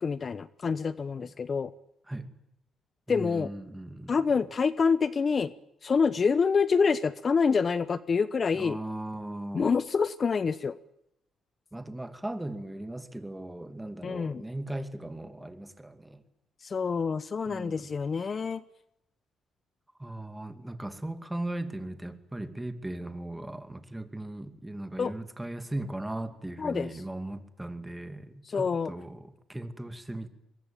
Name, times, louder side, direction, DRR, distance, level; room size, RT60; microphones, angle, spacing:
voice 1, 0.0-1.7 3.1-3.5 4.1-5.5 5.8-8.8 9.5-10.8 14.0-14.4 16.6-18.6 25.0-25.1 26.6-26.9 28.5-28.9, left 5 dB, 40° left, 16 dB, 0.9 m, -27 dB
voice 2, 3.1-4.2 8.5-9.7 11.7-16.2 17.5-18.3 20.0-30.3, right 1 dB, 10° right, 9 dB, 2.6 m, -38 dB
24.0 x 22.5 x 9.1 m, 0.84 s
cardioid pair, 90°, 0 cm